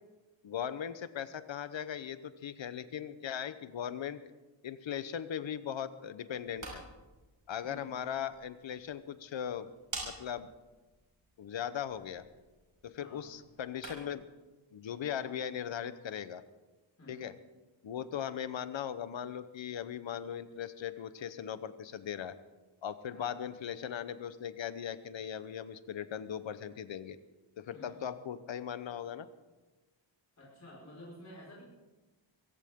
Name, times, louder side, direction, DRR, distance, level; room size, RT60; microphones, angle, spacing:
voice 1, 0.4-4.2 4.6-6.8 7.5-9.7 10.0-10.5 11.4-12.2 12.8-14.3 14.7-16.4 17.1-17.3 17.8-22.3 22.8-27.2 27.6-29.3, left 9 dB, 75° left, 13 dB, 1.0 m, -39 dB
sound 1, 6.3-14.3, right 2 dB, 40° right, 5.7 m, -49 dB
voice 2, 17.0-17.3 23.1-23.4 27.7-28.0 30.4-31.6, left 1 dB, 35° left, -5 dB, 5.2 m, -51 dB
22.5 x 16.5 x 3.7 m, 1.2 s
wide cardioid pair, 150°, 46 cm